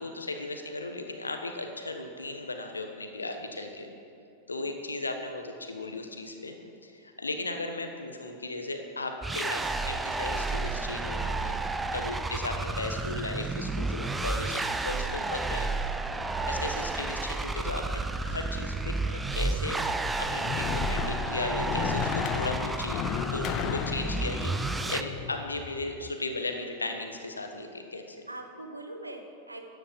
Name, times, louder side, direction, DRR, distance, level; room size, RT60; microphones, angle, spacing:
voice 1, 0.0-3.9 4.5-6.6 6.8-23.0 23.3-28.3, left 2 dB, 80° left, 5 dB, 1.2 m, -36 dB
voice 2, 3.4-4.0 4.5-4.7 6.6-6.8 7.5-7.6 12.1-12.5 15.1-15.5 16.4-16.7 28.3-29.6, right 2 dB, 85° right, 4 dB, 1.2 m, -45 dB
sound 1, 9.2-25.0, right 3 dB, 10° right, 0.6 m, -31 dB
sound 2, 20.0-26.1, left 11 dB, 40° left, 0.5 m, -34 dB
13.5 x 9.9 x 5.3 m, 2.7 s
figure-of-eight pair, 90°, 0 cm